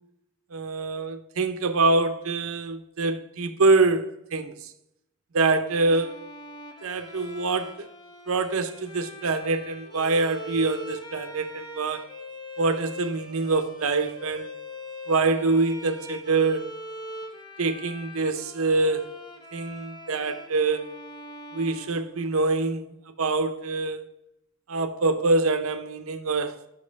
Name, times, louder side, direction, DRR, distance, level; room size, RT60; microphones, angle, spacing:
voice 1, 0.5-4.7 5.3-6.3 6.8-7.9 8.3-12.0 12.6-14.5 15.1-16.8 17.6-19.2 19.5-20.9 21.5-22.9 23.2-24.1 24.7-26.6, right 3 dB, 70° right, 0.7 m, -25 dB
Bowed string instrument, 5.7-22.7, left 1 dB, 20° left, 0.8 m, -42 dB
6.2 x 5.4 x 5.1 m
head